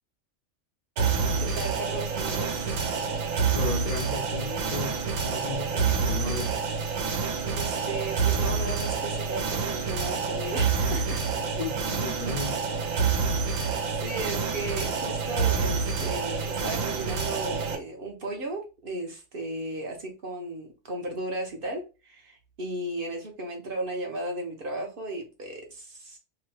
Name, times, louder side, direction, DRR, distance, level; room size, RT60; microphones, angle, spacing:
sound 1, 1.0-17.8, right 5 dB, 75° right, 1.1 m, -28 dB
voice 1, 1.4-2.8 7.5-11.2 14.0-26.2, right 1 dB, 50° right, 0.8 m, -35 dB
voice 2, 3.5-5.0 5.2-6.5 11.4-12.6, left 3 dB, 60° left, 0.4 m, -35 dB
2.9 x 2.2 x 3.1 m
omnidirectional pair, 1.4 m